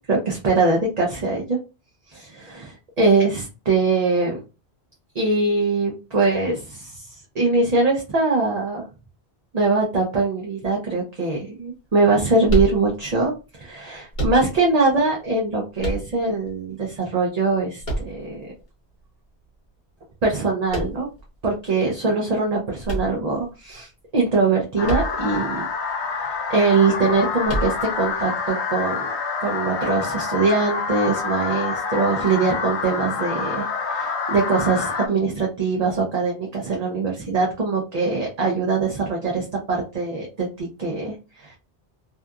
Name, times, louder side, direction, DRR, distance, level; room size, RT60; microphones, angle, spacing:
voice 1, 0.1-1.6 2.1-4.4 5.1-8.8 9.5-18.5 20.2-21.1 21.4-25.6 26.0-29.1 29.4-41.6, right 3 dB, 45° right, -1 dB, 0.6 m, -22 dB
sound 1, 12.5-13.3 14.1-14.8 15.8-16.5 17.8-18.6 20.7-21.3 22.8-23.7 24.8-25.4 25.7-25.8 27.5-28.1, right 1 dB, 50° left, 1.1 m, -27 dB
sound 2, 24.8-35.1, left 5 dB, 85° left, 0.9 m, -27 dB
2.7 x 2.4 x 2.2 m, 0.30 s
omnidirectional pair, 1.1 m